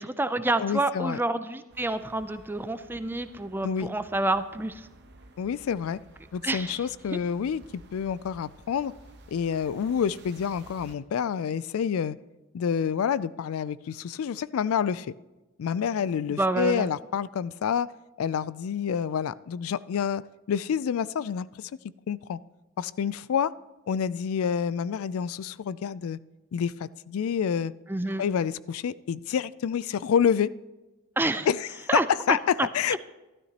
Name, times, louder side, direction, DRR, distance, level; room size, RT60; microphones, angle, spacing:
voice 1, 0.0-4.9 6.4-7.2 16.4-16.9 27.9-28.2 31.2-31.5 31.9-33.0, right 2 dB, 10° right, 11 dB, 0.4 m, -28 dB
voice 2, 0.6-1.2 3.6-3.9 5.4-6.0 6.3-8.9 9.3-12.2 12.5-15.1 15.6-17.9 18.2-20.2 20.5-21.7 22.1-22.4 22.8-23.5 23.9-26.2 26.5-27.7 28.2-30.5 31.5-32.0 32.3-32.4 32.7-33.0, left 7 dB, 75° left, 19 dB, 0.3 m, -28 dB
sound 1, 1.7-10.9, right 2 dB, 50° right, 1.0 m, -53 dB
13.0 x 12.0 x 2.9 m, 1.1 s
head